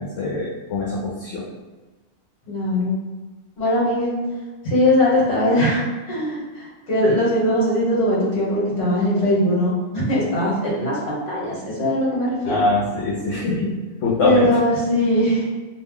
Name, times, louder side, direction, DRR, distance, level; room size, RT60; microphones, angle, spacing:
voice 1, 0.0-1.5 12.4-14.5, left 2 dB, 70° left, -5 dB, 0.9 m, -23 dB
voice 2, 2.5-2.9 3.6-4.1 4.6-12.6 14.2-15.5, left 1 dB, 55° left, -5 dB, 1.2 m, -20 dB
2.5 x 2.0 x 3.6 m, 1.3 s
omnidirectional pair, 1.4 m